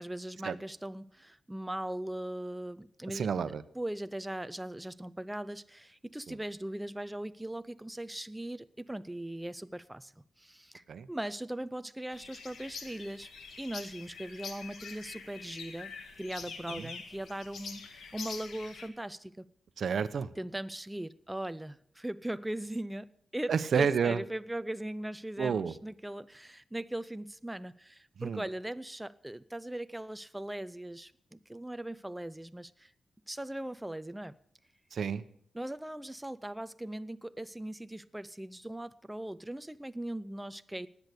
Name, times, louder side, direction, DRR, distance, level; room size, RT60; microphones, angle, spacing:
voice 1, 0.0-3.3 3.8-13.3 13.6-19.5 20.4-32.9 33.3-34.3 35.5-40.9, right 1 dB, 10° right, 0.5 m, -39 dB
voice 2, 3.1-3.6 6.3-6.4 10.9-11.1 16.7-16.9 19.8-20.3 23.5-24.2 25.4-25.7 28.2-28.4 34.9-35.2, right 6 dB, 65° right, 0.9 m, -30 dB
sound 1, 12.1-18.9, left 5 dB, 80° left, 2.1 m, -45 dB
19.0 x 8.2 x 8.1 m
cardioid pair, 85°, 0 cm